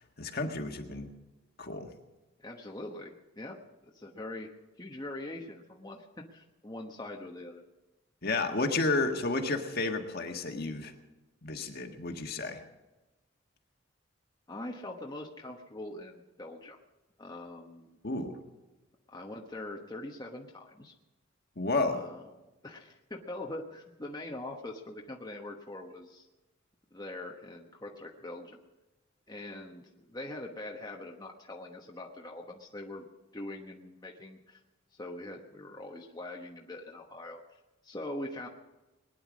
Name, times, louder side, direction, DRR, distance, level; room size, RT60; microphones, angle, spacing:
voice 1, 0.2-1.1 1.6-1.9 8.2-10.9 11.4-12.6 18.0-18.4 21.6-22.0, left 3 dB, 50° left, 4 dB, 1.6 m, -31 dB
voice 2, 2.4-3.6 3.8-4.5 4.8-7.6 14.5-16.8 17.2-18.0 19.1-20.9 21.9-22.3 22.6-26.3 26.9-28.6 29.3-33.1 33.3-34.6 34.9-38.5, left 1 dB, 20° left, 0 dB, 1.1 m, -43 dB
20.5 x 10.0 x 6.2 m, 1.1 s
head